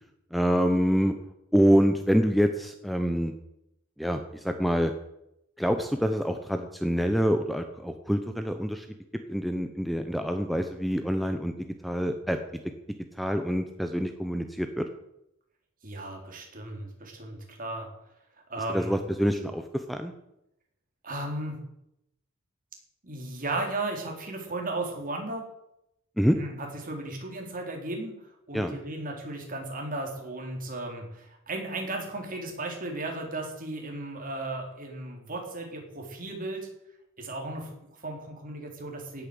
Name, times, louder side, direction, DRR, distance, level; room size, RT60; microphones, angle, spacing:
voice 1, 0.3-1.1 1.5-3.3 4.0-4.9 5.6-8.9 9.3-11.5 11.8-12.4 13.2-14.9 18.7-20.1 26.2-26.4 28.5-28.7, equal, ahead, 7 dB, 0.9 m, -26 dB
voice 2, 15.8-17.9 18.5-19.0 21.0-21.6 23.0-25.5 26.3-28.2 28.5-36.7 37.2-39.3, right 2 dB, 40° right, 1 dB, 4.1 m, -35 dB
17.0 x 8.8 x 8.0 m, 0.83 s
head